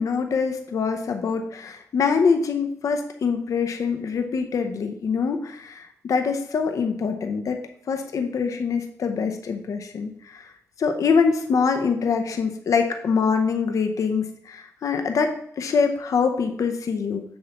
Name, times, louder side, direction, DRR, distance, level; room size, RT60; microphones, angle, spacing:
voice 1, 0.0-10.5 10.8-17.2, left 5 dB, 65° left, 6 dB, 0.6 m, -24 dB
6.9 x 6.4 x 2.9 m, 0.67 s
wide cardioid pair, 130°, 6 cm